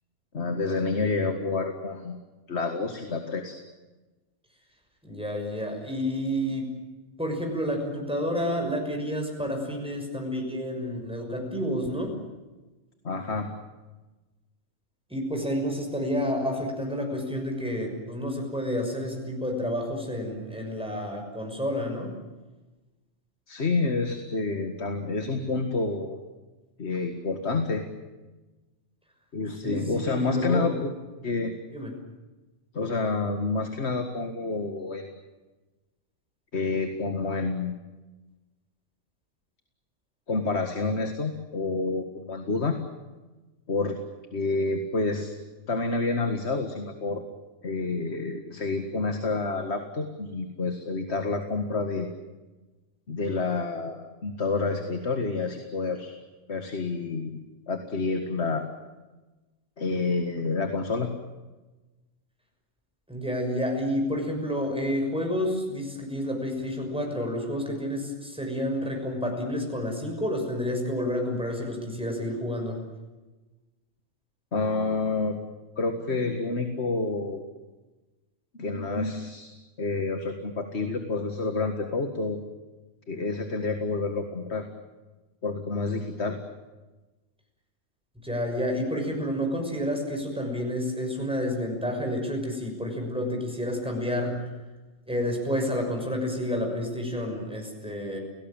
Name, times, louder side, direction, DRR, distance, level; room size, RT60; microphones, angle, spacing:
voice 1, 0.3-2.2 2.5-3.6 13.0-13.5 23.5-26.2 26.8-27.8 29.3-30.9 31.2-31.5 32.7-35.1 36.5-37.8 40.3-42.8 43.7-44.0 44.3-45.3 45.7-47.2 47.6-52.1 53.1-56.1 56.5-57.4 57.7-58.7 59.8-61.1 74.5-75.4 75.8-77.4 78.6-79.5 79.8-82.4 83.1-84.7 85.4-86.4, left 3 dB, 60° left, 6 dB, 2.1 m, -28 dB
voice 2, 5.0-6.7 7.2-12.2 15.1-22.2 29.6-30.8 31.7-31.9 63.1-72.8 88.2-94.5 95.1-98.2, equal, 5° right, 2 dB, 6.4 m, -30 dB
29.5 x 18.5 x 9.0 m, 1.2 s
omnidirectional pair, 1.2 m